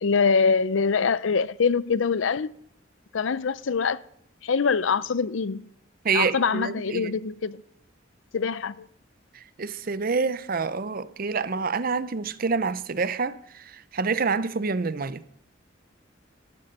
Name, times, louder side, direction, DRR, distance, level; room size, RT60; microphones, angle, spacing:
voice 1, 0.0-2.5 3.1-4.0 4.4-5.7 6.1-7.6 8.3-8.9, left 5 dB, 80° left, 0.5 m, -24 dB
voice 2, 6.0-7.1 9.6-15.2, right 4 dB, 50° right, 0.6 m, -27 dB
14.5 x 12.0 x 5.4 m
head